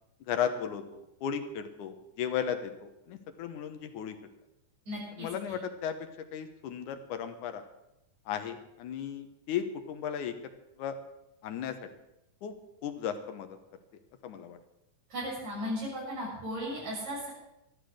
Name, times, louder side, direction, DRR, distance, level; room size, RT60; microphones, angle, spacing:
voice 1, 0.3-4.2 5.2-5.9 6.3-7.6 8.3-10.3 10.8-11.0 11.4-11.7 12.4-12.5 12.8-13.6 14.2-14.6, left 8 dB, 75° left, 7 dB, 2.6 m, -35 dB
voice 2, 4.9-5.6 15.1-17.3, equal, 60° right, -4 dB, 7.8 m, -36 dB
13.0 x 12.5 x 6.5 m, 0.86 s
omnidirectional pair, 3.7 m